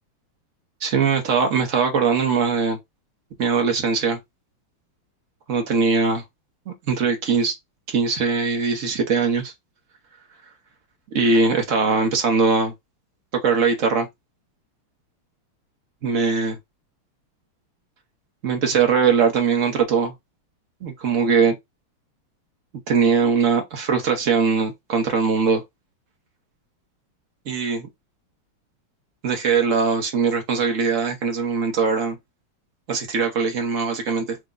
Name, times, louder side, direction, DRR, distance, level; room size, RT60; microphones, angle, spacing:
voice 1, 0.8-2.8 3.4-4.2 5.5-6.2 6.7-7.6 7.9-9.5 11.1-12.7 13.3-14.1 16.0-16.6 18.4-20.1 20.8-21.5 22.9-25.6 27.5-27.9 29.2-32.2 32.9-34.4, right 5 dB, 55° right, 0.9 m, -21 dB
4.7 x 2.2 x 3.7 m
omnidirectional pair, 2.4 m